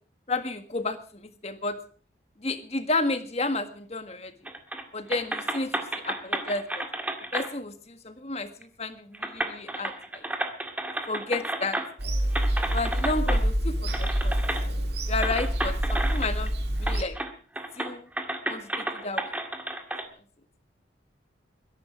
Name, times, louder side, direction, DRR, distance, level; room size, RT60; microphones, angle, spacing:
voice 1, 0.3-1.8 2.4-4.3 4.9-6.8 7.3-8.5 8.8-10.2 11.1-11.8 12.7-14.3 15.1-16.5 16.8-17.2 17.8-18.0 18.5-19.3, left 2 dB, 35° left, 9 dB, 1.6 m, -31 dB
sound 1, 4.4-4.8 5.1-7.5 8.6-8.7 9.1-12.0 12.3-13.4 13.9-14.6 15.2-16.5 16.8-17.3 17.6-20.0, right 1 dB, 10° right, 1.8 m, -32 dB
Bird vocalization bird call bird song / Telephone, 12.0-17.0, equal, 60° right, 1.9 m, -27 dB
22.0 x 11.0 x 4.8 m, 0.41 s
head